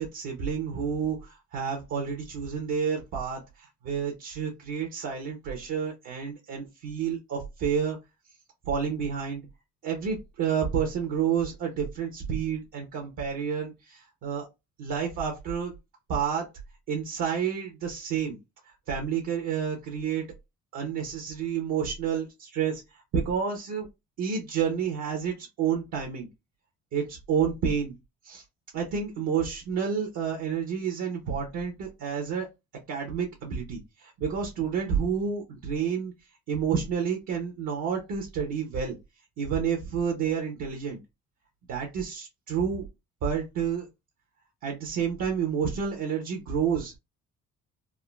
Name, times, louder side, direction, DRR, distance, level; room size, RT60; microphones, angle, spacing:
voice 1, 0.0-8.0 8.6-9.5 9.8-14.5 14.8-15.7 16.1-16.5 16.9-18.4 18.6-20.3 20.7-23.9 24.2-26.3 26.9-27.9 28.2-28.4 28.7-32.5 32.9-36.1 36.5-38.9 39.4-41.0 41.7-42.8 43.2-43.9 44.6-47.0, right 7 dB, 75° right, 1 dB, 0.9 m, -30 dB
3.6 x 2.1 x 2.3 m, 0.23 s
cardioid pair, 80°, 29 cm